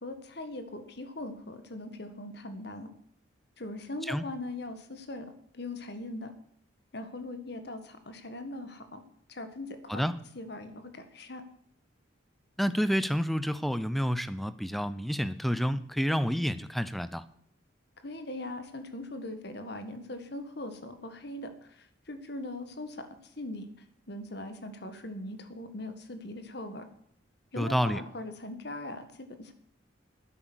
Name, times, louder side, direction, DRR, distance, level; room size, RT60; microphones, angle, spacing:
voice 1, 0.0-2.9 3.6-6.3 6.9-9.0 9.3-10.0 10.4-11.4 18.0-23.7 24.1-26.9 27.5-29.5, left 2 dB, 55° left, 9 dB, 1.7 m, -40 dB
voice 2, 12.6-17.2 27.6-28.0, equal, ahead, 15 dB, 0.6 m, -29 dB
12.0 x 10.5 x 6.2 m, 0.70 s
head